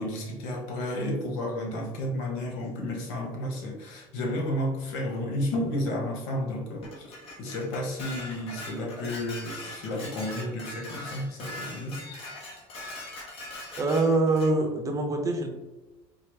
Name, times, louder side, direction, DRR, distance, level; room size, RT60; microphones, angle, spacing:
voice 1, 0.0-12.0, left 1 dB, 90° left, 1 dB, 1.0 m, -32 dB
Dishes pots and pans, 6.8-14.5, left 1 dB, 50° left, 1.2 m, -41 dB
voice 2, 13.8-15.5, right 2 dB, 25° right, 3 dB, 0.7 m, -24 dB
4.7 x 2.0 x 3.3 m, 1.1 s
cardioid pair, 110°, 12 cm